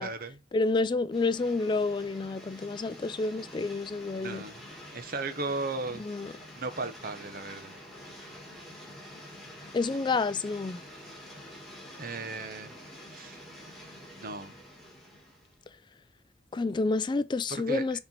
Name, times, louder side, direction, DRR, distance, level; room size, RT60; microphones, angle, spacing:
voice 1, 0.0-0.4 4.1-4.7 4.9-6.1 6.5-7.8 12.0-12.7 13.1-13.4 14.1-14.5 17.5-17.9, right 3 dB, 55° right, 1.0 m, -36 dB
voice 2, 0.5-4.4 6.0-6.3 9.7-10.8 16.5-18.0, left 3 dB, 25° left, 0.3 m, -29 dB
sound 1, 1.1-15.6, left 1 dB, ahead, 2.4 m, -47 dB
6.8 x 4.3 x 4.4 m
head